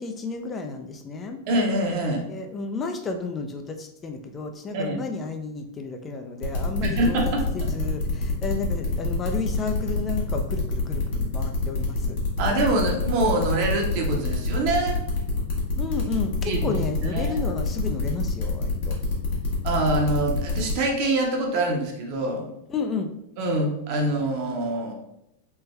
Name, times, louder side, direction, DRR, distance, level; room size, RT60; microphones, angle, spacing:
voice 1, 0.0-1.4 2.2-7.2 7.5-12.2 15.8-19.0 22.7-23.1, left 4 dB, 25° left, 5 dB, 0.4 m, -32 dB
voice 2, 1.5-2.2 4.7-5.0 6.8-7.4 12.4-15.0 16.4-16.7 17.1-17.3 19.6-22.4 23.4-24.9, right 2 dB, 55° right, 1 dB, 0.8 m, -25 dB
sound 1, 6.4-20.7, left 4 dB, 65° left, 1.1 m, -26 dB
3.3 x 2.1 x 3.1 m, 0.80 s
hypercardioid pair, 110°, 0 cm